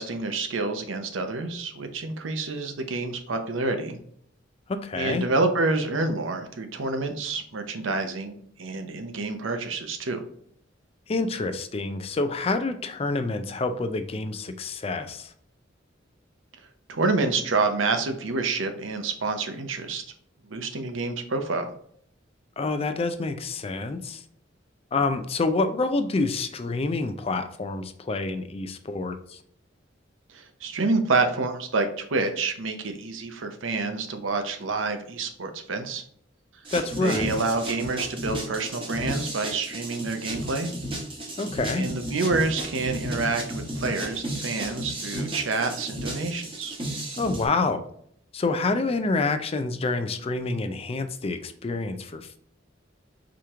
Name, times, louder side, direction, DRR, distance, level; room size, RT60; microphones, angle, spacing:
voice 1, 0.0-4.0 4.9-10.2 16.9-20.0 20.5-21.7 30.3-36.0 37.0-40.7 41.8-46.8, right 3 dB, 85° right, 6 dB, 0.7 m, -28 dB
voice 2, 4.7-5.2 11.1-15.3 22.6-24.2 24.9-29.4 36.7-37.4 41.4-41.8 47.2-47.9 48.3-52.4, left 3 dB, 30° left, 8 dB, 0.4 m, -27 dB
sound 1, 36.6-47.5, right 1 dB, 30° right, 1.2 m, -34 dB
4.9 x 3.0 x 3.5 m, 0.65 s
head